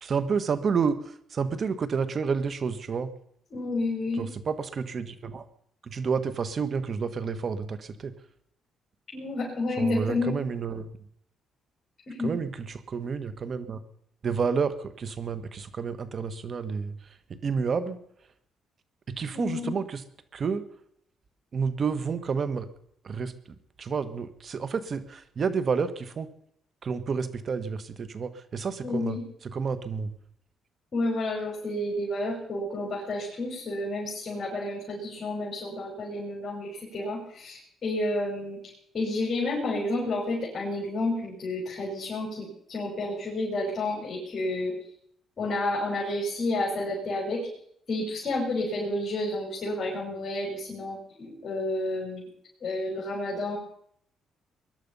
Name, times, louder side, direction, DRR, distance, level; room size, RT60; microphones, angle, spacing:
voice 1, 0.0-3.1 4.1-5.5 5.8-8.1 9.8-10.9 12.2-13.8 14.2-18.0 19.1-20.0 20.3-20.7 21.5-22.7 23.0-23.3 23.8-26.3 26.8-30.2, right 5 dB, 50° right, 13 dB, 1.5 m, -30 dB
voice 2, 3.5-4.3 9.1-10.4 12.1-12.4 19.3-19.8 28.8-29.2 30.9-38.6 38.9-44.7 45.4-47.4 47.9-52.3 52.6-53.6, left 2 dB, 45° left, -5 dB, 6.0 m, -30 dB
21.0 x 11.5 x 5.5 m, 0.69 s
cardioid pair, 90°, 0 cm